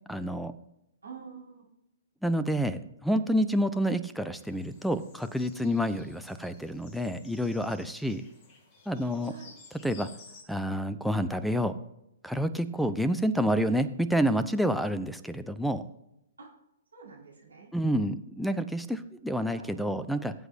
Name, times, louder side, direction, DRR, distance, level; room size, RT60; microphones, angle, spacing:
voice 1, 0.1-0.5 2.2-8.2 8.9-9.3 9.8-10.1 10.5-11.7 12.2-15.8 17.7-20.3, equal, ahead, 12 dB, 0.6 m, -28 dB
voice 2, 1.0-1.6 9.3-9.5 16.4-16.5 16.9-17.7 19.4-19.8, right 5 dB, 70° right, -3 dB, 4.7 m, -47 dB
sound 1, 4.3-10.4, left 4 dB, 25° left, 2.1 m, -55 dB
19.0 x 8.1 x 2.6 m, 0.85 s
figure-of-eight pair, 115°, 0 cm